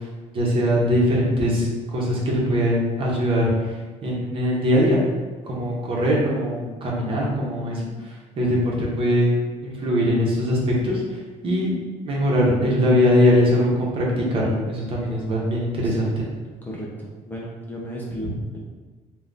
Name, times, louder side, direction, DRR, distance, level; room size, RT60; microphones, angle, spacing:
voice 1, 0.3-3.5 4.0-5.0 5.5-7.9 8.4-9.3 9.6-11.0 11.4-11.7 12.1-14.0 14.3-16.2, equal, 40° right, -4 dB, 1.0 m, -21 dB
voice 2, 15.8-16.1 16.6-18.6, equal, 15° left, -4 dB, 0.6 m, -34 dB
3.9 x 2.5 x 3.5 m, 1.3 s
cardioid pair, 145°, 14 cm